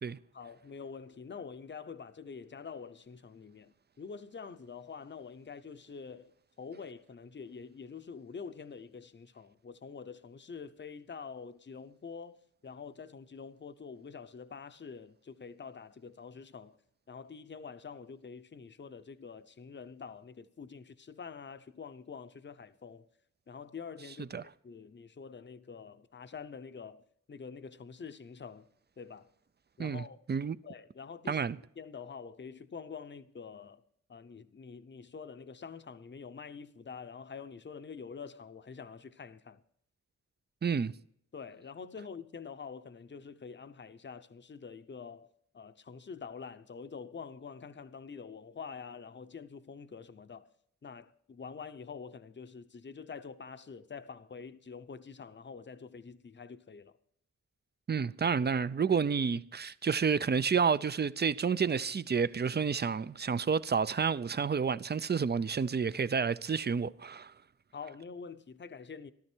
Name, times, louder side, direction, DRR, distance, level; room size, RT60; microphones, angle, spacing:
voice 1, 0.3-6.3 6.6-12.4 12.6-16.8 17.1-23.1 23.5-28.7 29.0-29.3 29.8-30.2 30.6-31.4 31.8-33.8 34.1-39.6 41.3-50.5 50.8-57.0 67.7-69.1, left 5 dB, 35° left, 0.8 m, -46 dB
voice 2, 40.6-40.9 57.9-67.3, right 6 dB, 35° right, 0.5 m, -30 dB
14.0 x 13.0 x 4.5 m
wide cardioid pair, 105°, 31 cm